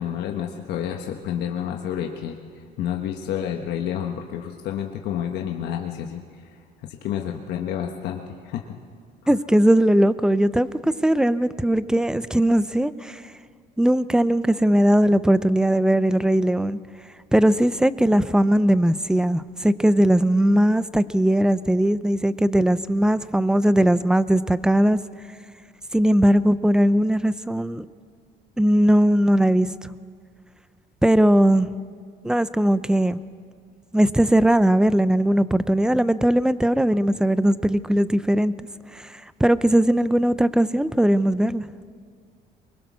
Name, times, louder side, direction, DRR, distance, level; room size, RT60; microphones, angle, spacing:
voice 1, 0.0-2.4 2.8-6.4 6.8-8.8 9.2-9.3, left 9 dB, 80° left, 2 dB, 1.3 m, -29 dB
voice 2, 9.3-13.2 13.8-16.8 17.3-25.0 25.9-27.8 28.6-29.7 31.0-31.7 32.2-33.2 33.9-38.5 38.9-41.6, right 1 dB, 5° right, 15 dB, 0.6 m, -19 dB
24.0 x 21.5 x 6.3 m, 2.1 s
cardioid pair, 110°, 17 cm